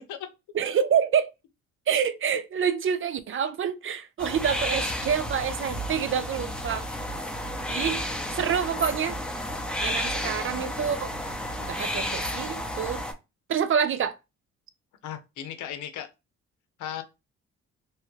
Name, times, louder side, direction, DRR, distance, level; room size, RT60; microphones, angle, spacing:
voice 1, 0.5-1.3 1.9-6.9 7.7-8.0 8.3-9.2 9.8-11.1 11.6-13.0 13.5-14.2, right 7 dB, 45° right, 0.5 m, -27 dB
sound 1, 4.2-13.1, equal, 5° left, 0.7 m, -32 dB
voice 2, 10.2-10.7 15.0-16.1 16.8-17.0, left 10 dB, 75° left, 0.7 m, -37 dB
3.0 x 2.2 x 3.1 m
cardioid pair, 90°, 30 cm